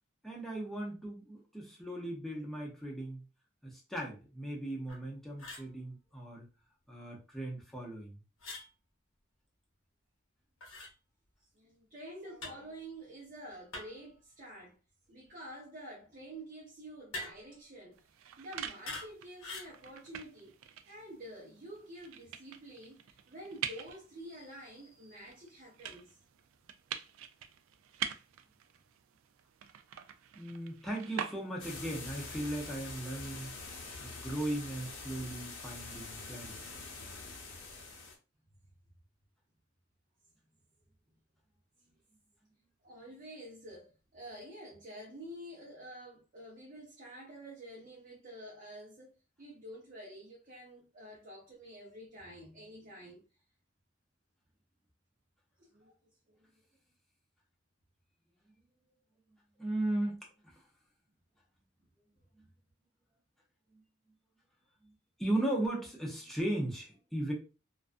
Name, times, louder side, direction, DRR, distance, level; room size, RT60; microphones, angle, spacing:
voice 1, 0.2-3.2 3.6-6.4 6.9-8.2 30.4-33.5 34.0-36.6 59.6-60.2 60.4-60.6 63.7-63.8 64.8-64.9 65.2-67.3, right 1 dB, ahead, 0.6 m, -37 dB
sound 1, 4.9-5.0 5.4-5.7 8.4-8.7 10.6-10.9 12.4-12.7 13.7-14.1 17.1-17.6 18.9-19.1 19.4-19.7, left 2 dB, 85° left, 1.0 m, -43 dB
voice 2, 11.5-14.8 15.1-18.0 18.4-20.5 20.9-26.2 42.8-53.2 55.6-55.9 56.3-56.5, right 1 dB, 45° right, 0.7 m, -49 dB
sound 2, 17.9-31.8, right 9 dB, 85° right, 0.3 m, -45 dB
sound 3, 31.6-38.2, left 3 dB, 65° left, 0.7 m, -45 dB
2.4 x 2.2 x 2.4 m
head